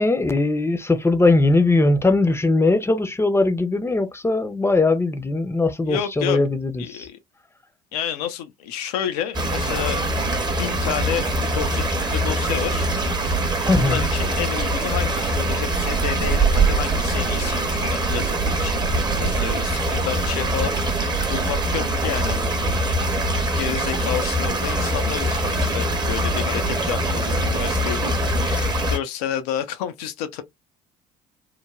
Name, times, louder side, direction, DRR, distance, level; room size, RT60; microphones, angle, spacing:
voice 1, 0.0-7.1 13.6-14.1, left 2 dB, 15° left, 0.6 m, -20 dB
voice 2, 5.9-6.4 6.8-7.2 7.9-10.0 10.6-12.9 13.8-30.4, left 9 dB, 75° left, 0.5 m, -30 dB
sound 1, 9.3-29.0, right 1 dB, 20° right, 0.8 m, -23 dB
sound 2, 12.4-23.5, right 4 dB, 50° right, 0.9 m, -32 dB
3.1 x 2.1 x 2.2 m
hypercardioid pair, 60°, 20 cm